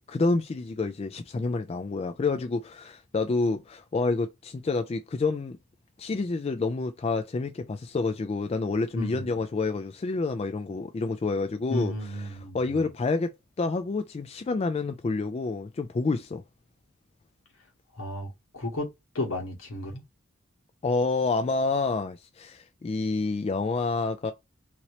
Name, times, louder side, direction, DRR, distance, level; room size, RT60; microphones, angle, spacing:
voice 1, 0.0-5.6 6.0-11.9 12.5-16.4 20.8-24.3, left 3 dB, 30° left, 0.3 m, -28 dB
voice 2, 8.9-9.3 11.7-12.8 17.9-18.9 19.1-20.0, left 1 dB, 75° left, 1.4 m, -33 dB
2.9 x 2.8 x 3.0 m
head